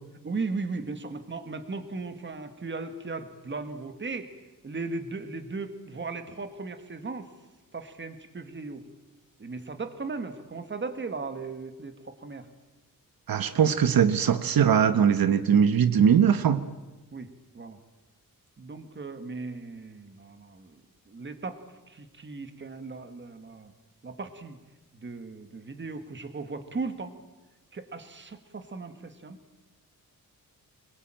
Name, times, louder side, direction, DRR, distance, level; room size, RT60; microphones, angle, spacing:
voice 1, 0.2-4.3 4.6-7.3 7.7-8.8 9.4-12.5 17.1-17.8 18.6-20.8 21.1-21.6 21.9-23.7 24.0-24.6 24.9-27.1 27.7-29.4, right 3 dB, 35° right, 1.8 m, -37 dB
voice 2, 13.3-16.6, right 8 dB, 85° right, 1.1 m, -21 dB
25.5 x 22.0 x 9.0 m
wide cardioid pair, 170°, 34 cm